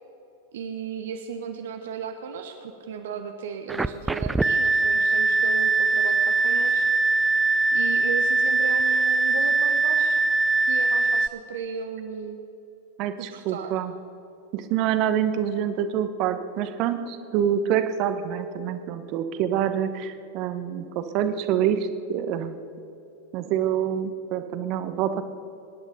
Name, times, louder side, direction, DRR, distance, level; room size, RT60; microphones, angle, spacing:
voice 1, 0.5-6.9 7.7-10.2 10.6-12.4 13.2-13.8, right 6 dB, 60° right, 6 dB, 1.0 m, -35 dB
sound 1, 3.7-11.3, right 3 dB, 10° right, 0.5 m, -22 dB
voice 2, 13.0-13.9 14.5-22.5 23.3-25.2, right 9 dB, 40° right, 9 dB, 1.2 m, -26 dB
25.0 x 10.5 x 5.2 m, 2.9 s
figure-of-eight pair, 90°, 0 cm